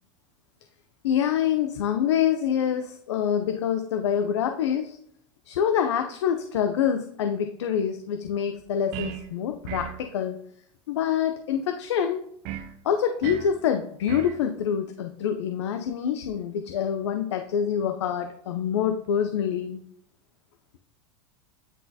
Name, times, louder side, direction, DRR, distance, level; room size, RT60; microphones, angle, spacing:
voice 1, 1.0-5.0 5.5-10.4 10.9-12.2 12.8-19.8, left 8 dB, 90° left, 6 dB, 0.5 m, -26 dB
sound 1, 8.9-9.3 9.7-10.0 12.5-12.7 13.2-13.5 14.1-14.4, right 10 dB, 55° right, 0.7 m, -35 dB
9.8 x 3.9 x 2.7 m, 0.68 s
supercardioid pair, 110°, 14 cm